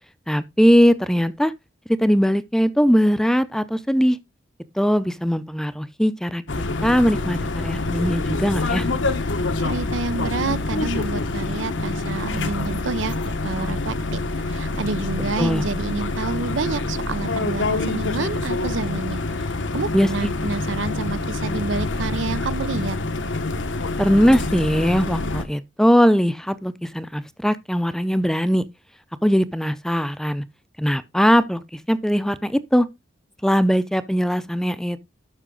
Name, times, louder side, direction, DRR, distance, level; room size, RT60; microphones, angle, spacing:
voice 1, 0.3-1.5 2.0-4.2 4.8-6.4 6.8-8.9 15.4-15.6 19.9-20.1 24.0-28.6 29.2-30.4 30.8-31.6 31.9-32.9 33.4-35.0, equal, 5° left, 0.5 m, -20 dB
sound 1, 6.5-25.4, left 2 dB, 80° left, 1.1 m, -26 dB
voice 2, 9.6-13.2 13.4-23.0, right 3 dB, 85° right, 0.6 m, -29 dB
12.5 x 5.8 x 3.8 m
head